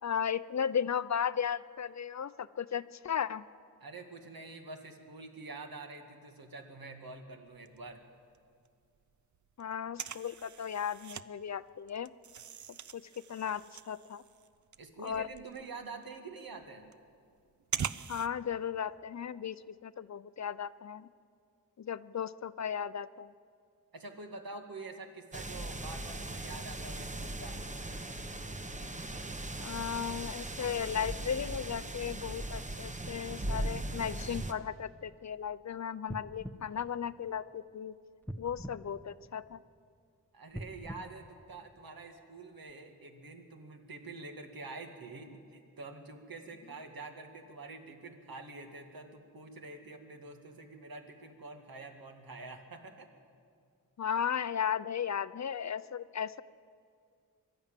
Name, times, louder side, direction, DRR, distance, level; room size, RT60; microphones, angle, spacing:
voice 1, 0.0-3.4 9.6-12.1 12.9-14.2 15.0-15.3 18.1-21.1 21.8-23.3 29.6-37.9 38.4-39.6 54.0-56.4, left 8 dB, 50° left, 16 dB, 0.5 m, -35 dB
voice 2, 3.8-8.0 14.8-16.9 23.9-27.6 40.3-53.1, right 3 dB, 80° right, 4 dB, 2.1 m, -47 dB
sound 1, 7.5-8.4 8.6-8.7 9.0-11.3 11.6-18.3, right 8 dB, 55° right, 0.6 m, -42 dB
sound 2, 25.3-34.5, right 1 dB, 20° right, 1.0 m, -39 dB
sound 3, 36.0-37.7 38.2-39.8 40.4-42.1 42.7-42.8, equal, 5° left, 0.9 m, -46 dB
23.5 x 12.0 x 9.0 m, 2.3 s
wide cardioid pair, 125°, 35 cm